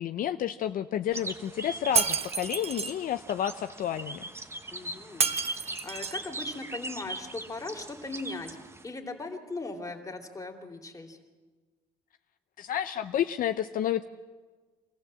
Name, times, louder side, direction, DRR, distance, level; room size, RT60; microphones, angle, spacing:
voice 1, 0.0-4.2 12.6-14.0, left 10 dB, 55° left, 9 dB, 0.7 m, -30 dB
sound 1, 1.1-8.8, right 2 dB, 15° right, 1.1 m, -40 dB
Shatter, 2.0-2.9 5.2-6.3, right 6 dB, 35° right, 1.0 m, -29 dB
voice 2, 4.7-8.5 8.8-11.2, left 3 dB, 20° left, 3 dB, 2.9 m, -39 dB
25.0 x 15.0 x 7.6 m, 1.4 s
cardioid pair, 110°, 17 cm